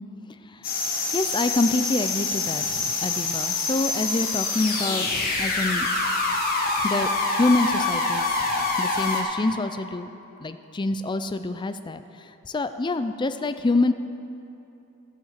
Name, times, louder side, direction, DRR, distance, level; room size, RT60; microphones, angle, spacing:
voice 1, 0.3-0.8 1.1-5.9 6.8-8.5 8.8-10.2 10.4-13.9, left 2 dB, 20° left, 10 dB, 0.4 m, -26 dB
sound 1, 0.6-9.2, left 3 dB, 40° left, 1.5 m, -26 dB
14.0 x 5.8 x 7.4 m, 2.8 s
head